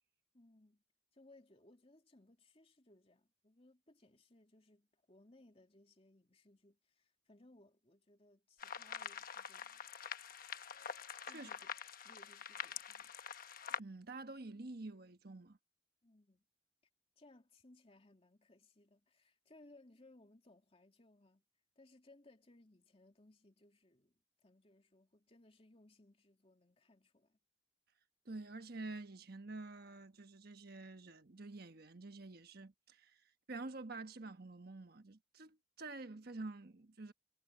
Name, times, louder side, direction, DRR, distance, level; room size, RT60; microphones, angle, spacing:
voice 1, 0.3-0.8 1.1-9.9 11.2-11.7 12.0-13.1 16.0-16.5 17.2-21.4 21.8-27.4, left 2 dB, 35° left, 2.7 m, -65 dB
sound 1, 8.6-13.8, left 7 dB, 50° left, 1.1 m, -46 dB
voice 2, 13.8-15.6 28.2-33.2 33.5-37.1, right 2 dB, 55° right, 1.3 m, -48 dB
head